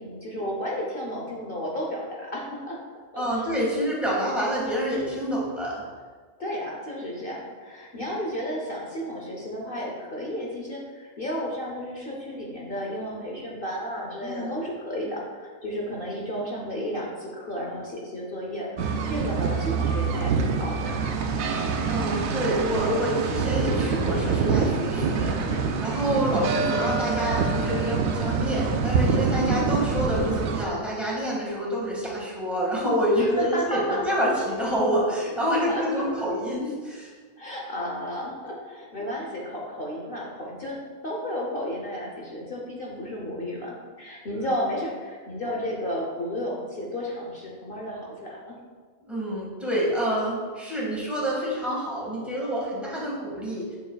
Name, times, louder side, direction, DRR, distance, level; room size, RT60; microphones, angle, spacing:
voice 1, 0.0-2.8 3.1-3.4 6.4-20.9 26.1-26.3 29.4-29.6 33.1-34.0 35.4-36.0 37.4-40.8 41.0-48.5, equal, 45° left, -2 dB, 0.9 m, -32 dB
voice 2, 3.2-5.8 7.9-8.0 14.2-14.5 21.9-37.1 49.1-53.8, equal, ahead, -6 dB, 1.7 m, -27 dB
sound 1, 18.8-30.7, right 5 dB, 80° right, 1.0 m, -25 dB
7.0 x 6.3 x 2.3 m, 1.5 s
omnidirectional pair, 1.4 m